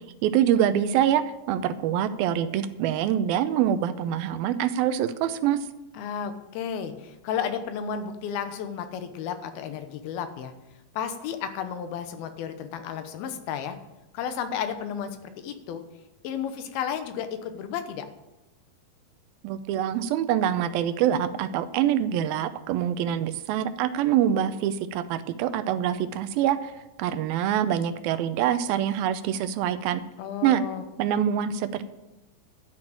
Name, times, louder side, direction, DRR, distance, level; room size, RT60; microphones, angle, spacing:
voice 1, 0.2-5.6 19.4-26.7 27.0-30.0 30.4-30.6 31.0-31.9, right 10 dB, 85° right, 11 dB, 2.5 m, -25 dB
voice 2, 5.9-10.5 10.9-13.8 14.1-15.8 16.2-18.1 30.2-30.8, left 8 dB, 80° left, 9 dB, 2.9 m, -33 dB
12.5 x 6.2 x 8.8 m, 0.99 s
omnidirectional pair, 4.3 m